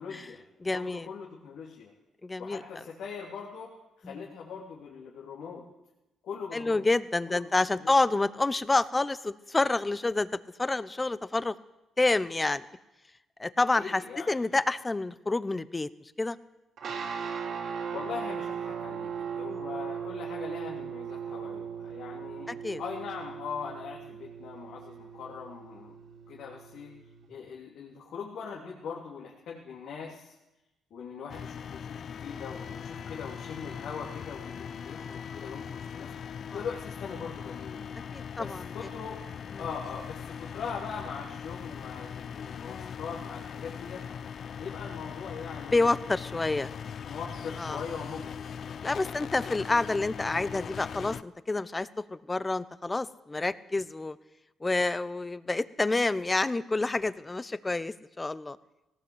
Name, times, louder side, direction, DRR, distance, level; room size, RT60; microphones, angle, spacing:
voice 1, 0.0-0.4 0.7-1.9 2.4-3.7 4.0-5.6 6.2-6.9 7.2-7.5 7.8-7.9 13.7-14.3 17.9-25.9 26.3-26.9 27.3-30.3 30.9-37.8 38.3-39.2 39.6-44.0 44.6-45.8 47.0-48.4 48.7-49.2, left 6 dB, 75° left, -3 dB, 3.4 m, -41 dB
voice 2, 0.6-1.1 2.2-2.6 4.0-4.2 6.5-10.3 10.6-11.5 12.0-12.6 13.4-14.0 14.3-15.9 16.2-16.4 19.5-19.6 22.5-22.8 36.5-36.6 38.1-38.6 45.7-46.7 47.6-47.8 48.8-54.2 54.6-58.6, left 2 dB, 20° left, 16 dB, 0.9 m, -28 dB
sound 1, 16.8-27.3, right 7 dB, 65° right, 3.8 m, -38 dB
sound 2, 31.3-51.2, left 7 dB, 55° left, 0.6 m, -40 dB
18.5 x 18.5 x 8.1 m, 0.97 s
cardioid pair, 90°, 0 cm